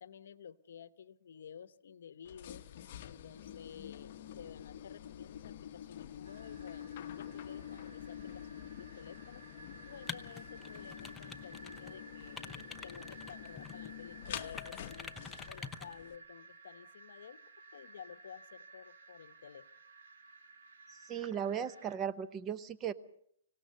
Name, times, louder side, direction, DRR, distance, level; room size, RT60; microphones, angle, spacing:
voice 1, 0.0-2.7 3.0-9.5 9.8-15.1 15.5-17.4 17.7-19.7, left 8 dB, 70° left, 15 dB, 1.0 m, -53 dB
sound 1, 2.2-16.2, left 10 dB, 45° left, 1.1 m, -47 dB
sound 2, 6.2-22.0, right 3 dB, 80° right, 4.5 m, -55 dB
sound 3, 10.1-11.9 12.2-13.9 14.4-15.9, left 5 dB, 10° left, 0.8 m, -47 dB
voice 2, 20.9-22.9, right 8 dB, 20° right, 12 dB, 0.8 m, -37 dB
25.5 x 17.5 x 6.7 m, 0.69 s
hypercardioid pair, 155°, 0 cm